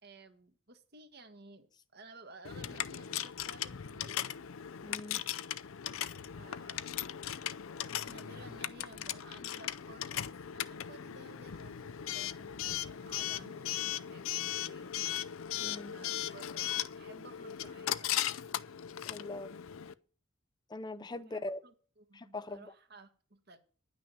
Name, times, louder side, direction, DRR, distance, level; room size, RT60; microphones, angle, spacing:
voice 1, 0.0-4.3 6.4-7.0 8.1-15.1 15.9-18.3 20.9-23.6, right 2 dB, 50° right, 1.4 m, -55 dB
Coin (dropping) / Alarm, 2.4-19.9, left 11 dB, 80° left, 0.5 m, -38 dB
voice 2, 4.8-5.2 15.6-15.9 19.1-19.6 20.7-21.6 22.1-22.7, left 2 dB, 20° left, 0.5 m, -41 dB
10.5 x 6.2 x 8.7 m
head